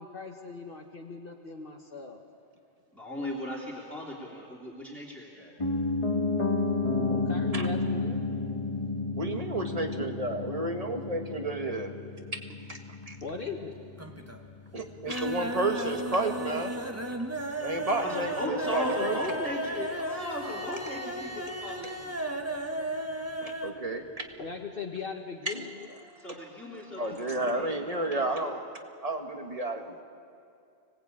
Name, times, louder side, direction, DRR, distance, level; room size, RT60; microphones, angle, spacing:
voice 1, 0.0-2.2 7.1-8.2 13.2-13.8 24.4-26.0, left 4 dB, 55° left, 2 dB, 1.4 m, -39 dB
voice 2, 2.9-5.5 18.0-22.1 26.2-27.7 28.1-28.3, left 1 dB, ahead, -6 dB, 3.0 m, -37 dB
Piano, 5.6-15.6 15.9-16.0, left 3 dB, 30° left, 1.4 m, -32 dB
voice 3, 9.2-11.9 12.7-12.8 13.1-13.2 14.7-16.7 17.6-19.4 21.8-21.9 23.4-24.3 25.5-25.7 26.1-26.7 27.0-28.6 29.0-30.0, right 2 dB, 35° right, 4 dB, 1.8 m, -32 dB
sound 1, 13.0-13.6 13.9-14.5 14.8-23.8 24.1-24.2 24.5-24.6, right 1 dB, 15° right, 1.3 m, -35 dB
25.5 x 18.5 x 8.6 m, 2.4 s
omnidirectional pair, 1.1 m